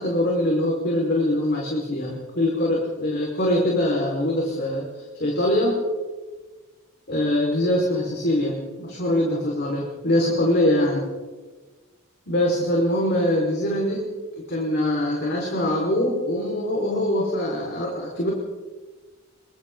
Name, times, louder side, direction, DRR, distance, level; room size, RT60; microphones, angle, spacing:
voice 1, 0.0-5.8 7.1-11.1 12.3-18.3, left 1 dB, 55° left, -2 dB, 4.7 m, -23 dB
27.5 x 25.5 x 3.9 m, 1.3 s
head